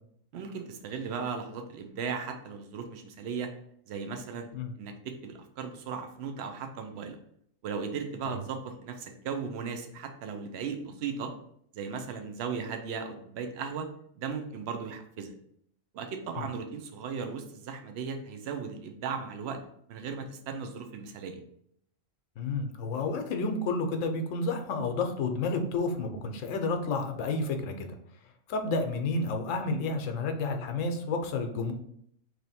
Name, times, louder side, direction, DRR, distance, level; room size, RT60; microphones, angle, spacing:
voice 1, 0.3-3.5 3.9-4.5 4.8-7.2 7.6-11.3 11.7-13.9 14.2-15.3 15.9-19.6 19.9-21.4, right 6 dB, 65° right, 6 dB, 0.8 m, -37 dB
voice 2, 22.4-27.9 28.5-31.7, left 3 dB, 75° left, 5 dB, 1.0 m, -30 dB
3.2 x 2.7 x 4.1 m, 0.69 s
omnidirectional pair, 1.4 m